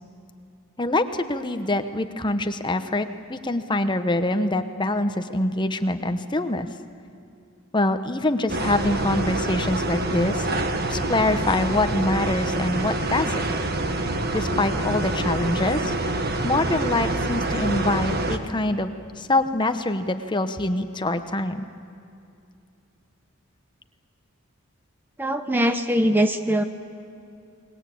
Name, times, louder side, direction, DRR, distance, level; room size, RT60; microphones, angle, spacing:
voice 1, 0.8-6.7 7.7-10.6 10.9-13.4 14.3-16.0 16.4-21.6, left 2 dB, 20° left, 9 dB, 0.9 m, -25 dB
sound 1, 8.5-18.4, right 2 dB, 45° right, 1.5 m, -26 dB
voice 2, 25.2-26.6, equal, 10° right, 8 dB, 0.8 m, -21 dB
29.0 x 21.0 x 8.5 m, 2.6 s
head